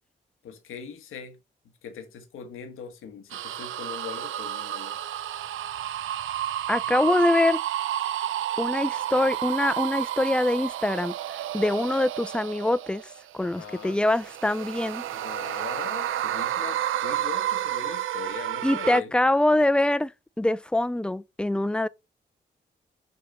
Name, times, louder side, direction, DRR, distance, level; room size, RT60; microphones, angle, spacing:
voice 1, 0.4-1.4 1.8-5.0 11.8-11.9 13.4-14.0 15.1-19.1, left 6 dB, 85° left, 1.2 m, -40 dB
sound 1, 3.3-13.2 13.8-19.0, right 12 dB, 75° right, 0.5 m, -31 dB
voice 2, 6.7-7.6 8.6-11.1 11.5-13.0 13.3-15.0 18.6-20.1 20.4-21.9, left 1 dB, 5° left, 0.4 m, -24 dB
6.5 x 2.9 x 5.3 m
supercardioid pair, 45°, 21 cm